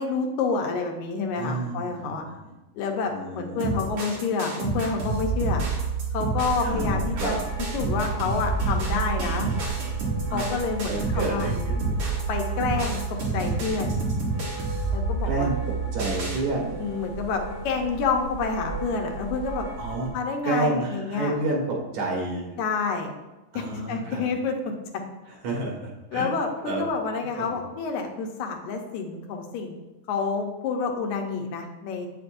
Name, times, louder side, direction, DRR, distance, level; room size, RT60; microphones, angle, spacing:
voice 1, 0.0-2.2 2.8-5.6 6.1-7.4 7.7-9.5 10.3-11.5 12.3-13.0 13.3-14.0 14.9-15.5 16.8-19.7 20.1-21.3 22.6-23.1 23.5-24.6 26.1-29.8 30.1-32.1, left 4 dB, 80° left, 3 dB, 2.2 m, -28 dB
voice 2, 1.3-2.4 3.1-3.9 6.6-7.4 10.3-10.5 10.8-12.0 15.2-16.8 19.8-20.1 20.4-22.5 23.5-24.2 25.3-26.8 27.4-27.6, right 2 dB, 75° right, -2 dB, 2.9 m, -30 dB
sound 1, 3.6-16.4, right 4 dB, 55° right, 2.7 m, -28 dB
sound 2, 6.4-20.1, right 2 dB, 15° right, 2.3 m, -36 dB
8.2 x 6.6 x 2.6 m, 1.1 s
omnidirectional pair, 3.4 m